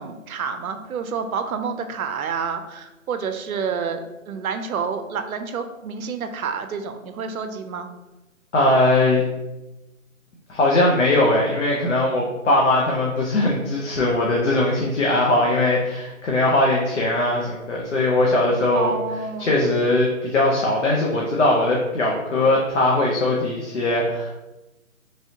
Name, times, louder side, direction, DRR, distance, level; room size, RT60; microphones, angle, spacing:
voice 1, 0.0-7.9 18.7-19.5, right 5 dB, 90° right, 8 dB, 0.5 m, -29 dB
voice 2, 8.5-9.2 10.5-18.9 19.4-24.3, left 2 dB, 60° left, -3 dB, 0.6 m, -20 dB
3.1 x 2.6 x 2.8 m, 1.0 s
hypercardioid pair, 165°, 41 cm